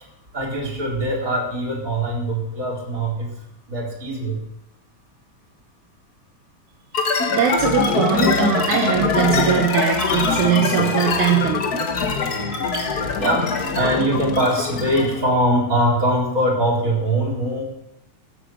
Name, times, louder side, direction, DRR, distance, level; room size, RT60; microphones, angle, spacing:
voice 1, 0.3-3.4 3.7-4.4 12.7-17.6, right 1 dB, 25° right, -2 dB, 4.2 m, -22 dB
sound 1, 6.9-15.2, left 4 dB, 45° left, 1.3 m, -23 dB
voice 2, 7.3-11.9, right 8 dB, 85° right, 1 dB, 2.6 m, -21 dB
15.0 x 8.8 x 6.4 m, 0.83 s
omnidirectional pair, 3.3 m